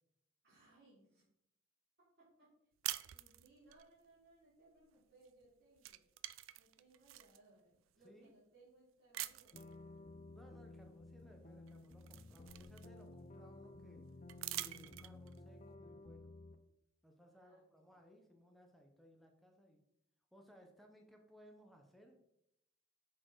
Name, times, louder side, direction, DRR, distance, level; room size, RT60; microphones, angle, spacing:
voice 1, 0.4-1.2 2.2-2.5 3.1-6.0 6.6-9.8 17.3-17.9, right 2 dB, 55° right, -11 dB, 2.8 m, -67 dB
sound 1, 2.8-3.8 5.2-5.5 5.8-7.4 8.0-8.1 9.1-9.7 11.2-11.3 11.7-13.2 14.3-15.4, right 15 dB, 80° right, 0.3 m, -46 dB
sound 2, 9.5-16.6, left 2 dB, 35° left, 0.4 m, -55 dB
voice 2, 10.3-14.0 14.5-16.3 17.0-19.8 20.3-22.2, equal, ahead, 2 dB, 0.7 m, -62 dB
6.3 x 4.3 x 4.6 m, 0.80 s
head